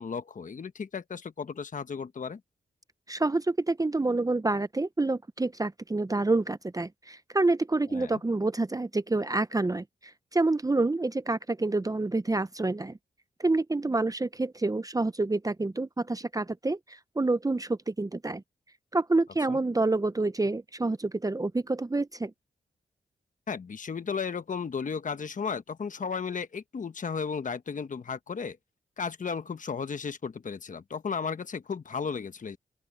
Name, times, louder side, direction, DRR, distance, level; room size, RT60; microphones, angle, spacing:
voice 1, 0.0-2.4 7.9-8.2 19.5-19.6 23.5-28.6 29.0-32.6, left 6 dB, 50° left, 1.1 m, -34 dB
voice 2, 3.1-13.0 13.4-18.4 18.9-22.3, right 2 dB, 20° right, 0.8 m, -28 dB
open air
cardioid pair, 55°, 17 cm